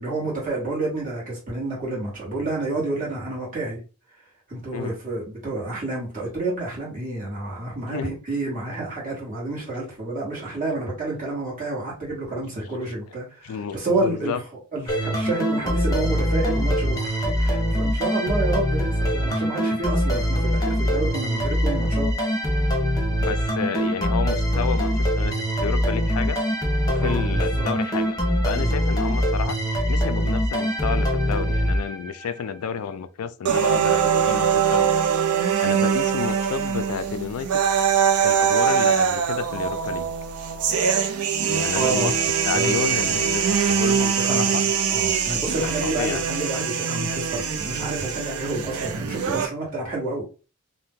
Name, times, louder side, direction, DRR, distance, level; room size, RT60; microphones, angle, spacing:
voice 1, 0.0-3.8 4.5-14.4 14.7-22.1 27.0-27.3 27.6-27.7 28.5-28.7 41.7-42.1 42.5-43.2 44.2-50.2, right 2 dB, 40° right, 1.3 m, -29 dB
voice 2, 13.4-14.4 23.2-26.4 26.8-28.1 28.4-29.6 29.9-35.0 35.4-37.6 38.2-40.1 41.5-42.1 42.5-44.6 45.6-46.2, left 7 dB, 85° left, 0.4 m, -31 dB
sound 1, 14.9-32.4, equal, 15° left, 0.8 m, -23 dB
sound 2, 33.5-49.5, right 7 dB, 85° right, 0.5 m, -23 dB
2.7 x 2.1 x 3.5 m
head